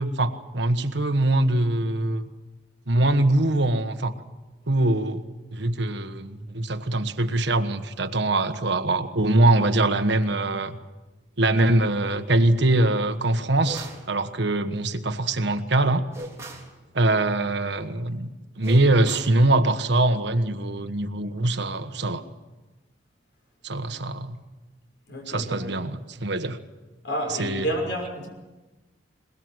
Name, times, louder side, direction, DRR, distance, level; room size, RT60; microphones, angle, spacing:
voice 1, 0.0-2.2 2.9-4.1 4.7-5.2 5.5-10.8 11.4-16.1 16.9-18.3 18.6-22.2 23.6-24.4 25.3-26.6 27.3-27.7, right 2 dB, 65° right, 1.4 m, -23 dB
sound 1, 13.6-14.1 16.1-16.7 18.6-19.4, right 1 dB, 15° right, 3.4 m, -39 dB
voice 2, 25.1-25.7 27.0-28.3, right 1 dB, 70° left, 5.9 m, -30 dB
22.0 x 21.5 x 8.0 m
head